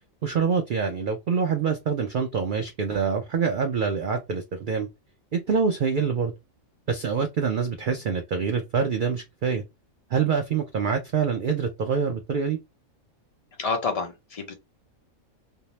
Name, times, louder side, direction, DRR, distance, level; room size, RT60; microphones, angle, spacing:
voice 1, 0.2-4.9 5.3-6.3 6.9-9.6 10.1-12.6, right 6 dB, 85° right, 0.4 m, -25 dB
voice 2, 13.6-14.5, left 4 dB, 40° left, 0.6 m, -28 dB
2.6 x 2.0 x 3.0 m
omnidirectional pair, 1.4 m